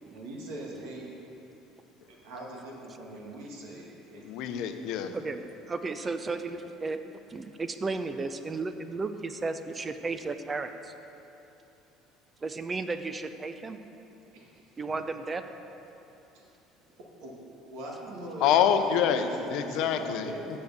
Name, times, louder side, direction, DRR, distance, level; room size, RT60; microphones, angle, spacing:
voice 1, 0.0-1.1 2.1-4.3 14.3-14.5 16.0-16.1 16.3-16.5 17.2-17.3 17.7-18.5 18.8-20.5, right 2 dB, 75° right, -3 dB, 1.8 m, -41 dB
voice 2, 4.2-5.1 18.4-20.3, left 8 dB, 70° left, 7 dB, 0.6 m, -26 dB
voice 3, 5.7-7.0 7.3-10.9 12.4-13.8 14.8-15.4, right 3 dB, 25° right, 9 dB, 0.6 m, -34 dB
7.0 x 6.6 x 6.7 m, 2.9 s
supercardioid pair, 80°, 0 cm